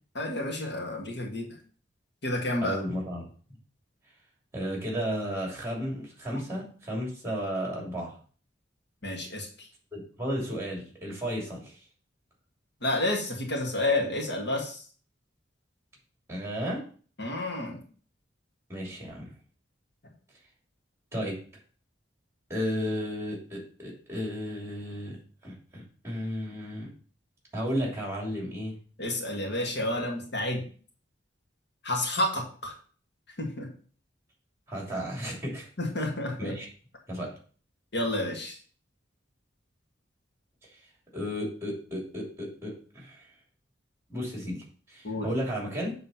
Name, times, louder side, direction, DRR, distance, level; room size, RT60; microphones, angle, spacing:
voice 1, 0.2-1.5 2.2-2.8 9.0-9.5 12.8-14.8 17.2-17.8 29.0-30.6 31.8-32.7 33.4-33.7 35.8-36.5 37.9-38.6 45.0-45.3, left 1 dB, 65° left, 0 dB, 1.9 m, -30 dB
voice 2, 2.6-3.3 4.5-8.1 9.9-11.8 16.3-16.8 18.7-19.3 21.1-21.4 22.5-25.2 25.4-26.9 27.5-28.8 30.0-30.1 34.7-35.7 36.4-36.7 37.1-37.3 40.7-40.8 41.1-43.3 44.1-45.9, equal, 15° right, -2 dB, 3.0 m, -33 dB
7.5 x 4.0 x 5.7 m, 0.42 s
head